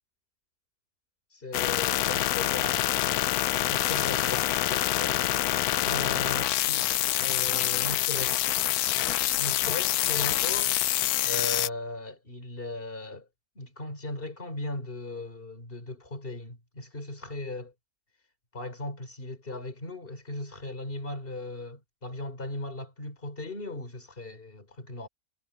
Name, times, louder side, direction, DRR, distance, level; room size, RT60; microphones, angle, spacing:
voice 1, 1.3-3.2 3.7-5.3 5.8-6.9 7.2-8.5 9.4-10.7 11.2-13.3 13.6-17.7 18.5-25.1, left 2 dB, 30° left, 3.9 m, -37 dB
sound 1, 1.5-11.7, left 14 dB, 70° left, 1.0 m, -26 dB
omnidirectional pair, 1.8 m